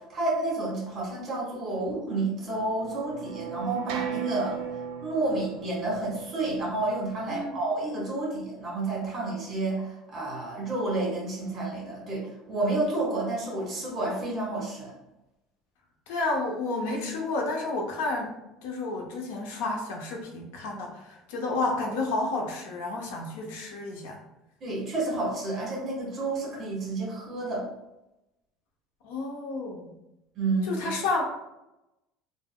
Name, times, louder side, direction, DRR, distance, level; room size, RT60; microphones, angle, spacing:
voice 1, 0.0-4.6 5.0-14.9 24.6-27.6 30.3-30.7, right 2 dB, 30° right, -4 dB, 1.3 m, -30 dB
sound 1, 2.5-7.6, right 8 dB, 80° right, 0.4 m, -37 dB
voice 2, 7.3-7.6 16.1-18.3 18.6-24.2 29.0-29.9 30.6-31.2, left 2 dB, 90° left, 1 dB, 0.6 m, -31 dB
3.5 x 2.0 x 2.2 m, 0.92 s
cardioid pair, 140°, 0 cm